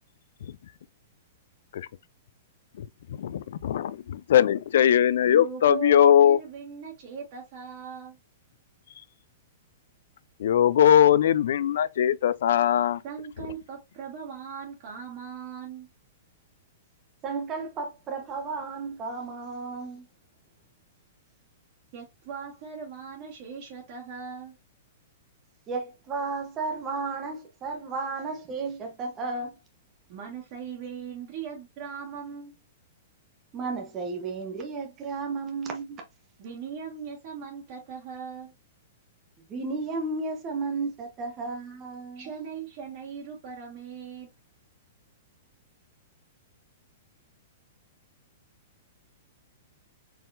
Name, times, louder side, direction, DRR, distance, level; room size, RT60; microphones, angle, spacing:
voice 1, 3.2-6.4 10.4-13.0, left 10 dB, 65° left, 0.3 m, -20 dB
voice 2, 5.3-8.2 13.0-15.9 21.9-24.6 30.1-32.6 36.4-38.5 42.1-44.3, right 6 dB, 40° right, 1.3 m, -39 dB
voice 3, 17.2-20.0 25.7-29.5 33.5-36.0 39.5-42.3, right 4 dB, 20° right, 0.9 m, -33 dB
4.3 x 3.6 x 2.5 m
hypercardioid pair, 160°, 0 cm